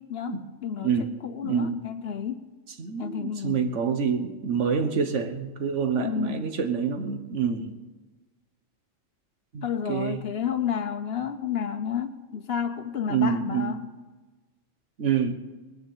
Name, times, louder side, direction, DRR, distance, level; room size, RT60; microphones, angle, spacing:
voice 1, 0.0-2.5 3.0-3.7 6.0-6.5 9.6-13.9, left 8 dB, 55° left, 0.9 m, -31 dB
voice 2, 0.8-1.1 1.4-1.8 2.8-7.7 9.5-10.2 13.1-13.7 15.0-15.4, right 6 dB, 65° right, 1.4 m, -27 dB
20.5 x 7.0 x 8.4 m
omnidirectional pair, 1.4 m